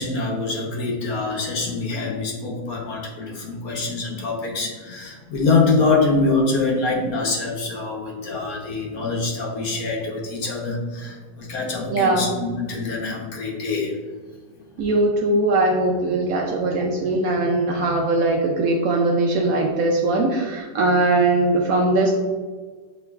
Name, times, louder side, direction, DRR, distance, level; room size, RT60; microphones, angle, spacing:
voice 1, 0.0-14.0 14.8-14.9, left 3 dB, 60° left, -2 dB, 1.2 m, -24 dB
voice 2, 11.9-12.3 14.8-22.1, right 2 dB, 70° right, 0 dB, 0.8 m, -20 dB
7.8 x 3.0 x 2.3 m, 1.5 s
omnidirectional pair, 1.8 m